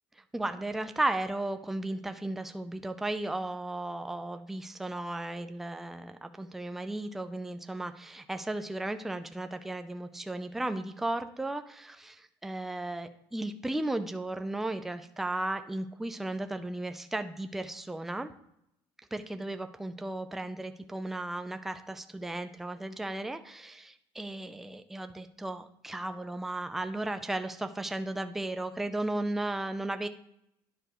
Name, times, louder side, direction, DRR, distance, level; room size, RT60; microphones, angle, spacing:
voice 1, 0.2-18.3 19.1-30.1, right 2 dB, 5° right, 8 dB, 0.4 m, -35 dB
11.5 x 10.0 x 3.0 m, 0.78 s
cardioid pair, 175°, 9 cm